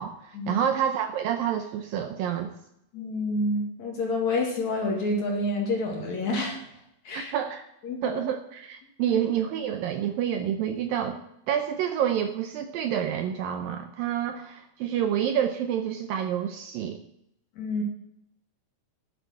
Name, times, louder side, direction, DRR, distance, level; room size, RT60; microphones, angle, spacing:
voice 1, 0.0-2.5 7.1-7.7 8.0-11.2 11.5-17.0, right 9 dB, 80° right, 6 dB, 2.2 m, -28 dB
voice 2, 2.9-6.6 7.0-7.3 7.8-8.2 17.6-17.8, left 2 dB, 50° left, 0 dB, 3.2 m, -28 dB
10.5 x 7.8 x 7.7 m, 0.78 s
omnidirectional pair, 4.6 m